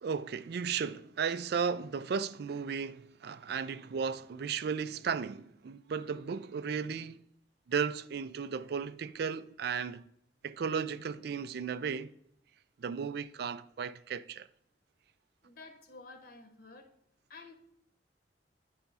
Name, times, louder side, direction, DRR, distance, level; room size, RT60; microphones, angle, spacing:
voice 1, 0.0-7.2 7.7-10.0 10.4-12.1 12.8-14.5, right 6 dB, 60° right, 0.4 m, -35 dB
voice 2, 15.4-16.9 17.3-17.5, left 3 dB, 55° left, 1.0 m, -51 dB
10.0 x 3.5 x 5.4 m
head